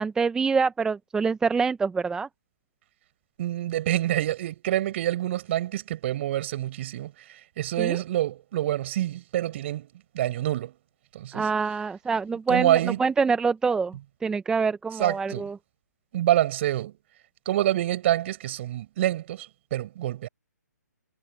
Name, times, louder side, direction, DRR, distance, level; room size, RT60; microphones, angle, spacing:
voice 1, 0.0-2.3 7.8-8.0 11.3-14.0 14.2-15.6, right 5 dB, 5° right, 0.8 m, -25 dB
voice 2, 3.4-7.1 7.6-9.9 10.1-10.7 11.1-11.5 12.5-13.0 15.0-15.5 16.1-16.9 17.5-20.3, right 13 dB, 40° right, 7.6 m, -26 dB
figure-of-eight pair, 140°, 9 cm